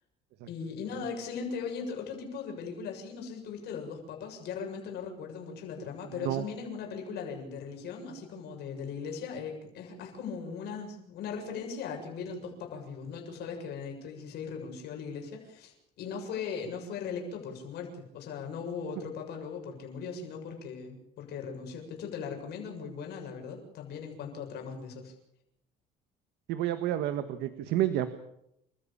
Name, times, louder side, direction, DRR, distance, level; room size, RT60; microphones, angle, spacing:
voice 1, 0.5-25.1, left 6 dB, 75° left, 2 dB, 7.4 m, -39 dB
voice 2, 26.5-28.1, right 12 dB, 85° right, 10 dB, 1.6 m, -30 dB
30.0 x 14.0 x 8.7 m, 0.79 s
cardioid pair, 110°, 17 cm